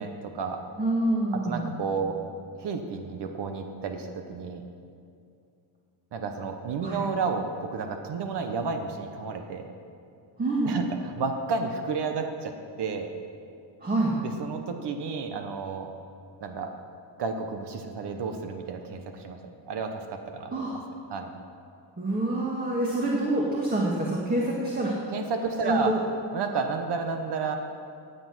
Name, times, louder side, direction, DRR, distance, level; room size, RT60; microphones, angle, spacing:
voice 1, 0.0-0.6 1.4-2.2 2.6-4.6 6.1-9.7 10.6-13.1 14.2-15.9 16.4-16.7 17.2-19.4 19.7-20.7 21.1-21.3 25.1-25.9 26.3-27.6, right 4 dB, 60° right, 5 dB, 1.1 m, -31 dB
voice 2, 0.8-1.7 6.8-7.0 10.4-10.7 13.8-14.1 20.5-20.8 22.0-25.0 25.6-26.0, right 1 dB, 20° right, -3 dB, 1.7 m, -26 dB
17.0 x 7.9 x 6.2 m, 2.5 s
cardioid pair, 145°, 46 cm